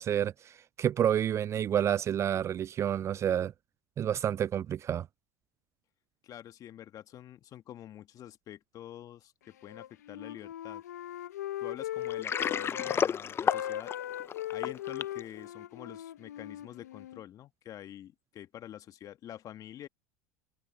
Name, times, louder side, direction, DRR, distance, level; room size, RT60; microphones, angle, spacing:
voice 1, 0.0-3.5 4.0-5.1, right 10 dB, 35° right, 0.3 m, -29 dB
voice 2, 6.2-10.8 11.6-13.9 14.5-19.9, left 11 dB, 45° left, 1.7 m, -47 dB
Wind instrument woodwind instrument, 9.6-13.0 13.3-17.2, left 12 dB, 85° left, 0.7 m, -39 dB
Water, 12.0-15.2, left 7 dB, 30° left, 0.5 m, -31 dB
hypercardioid pair, 90°, 9 cm